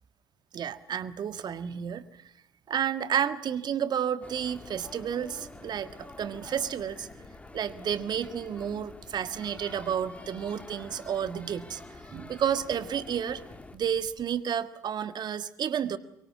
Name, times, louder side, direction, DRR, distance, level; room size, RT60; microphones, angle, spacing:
voice 1, 0.5-2.0 2.7-7.1 7.5-11.8 12.1-13.4 13.7-16.0, right 8 dB, 50° right, 12 dB, 1.7 m, -31 dB
sound 1, 4.2-13.8, left 2 dB, 15° left, 2.8 m, -48 dB
sound 2, 4.5-14.2, left 5 dB, 50° left, 7.9 m, -54 dB
24.0 x 23.5 x 7.4 m, 0.85 s
hypercardioid pair, 55°, 10 cm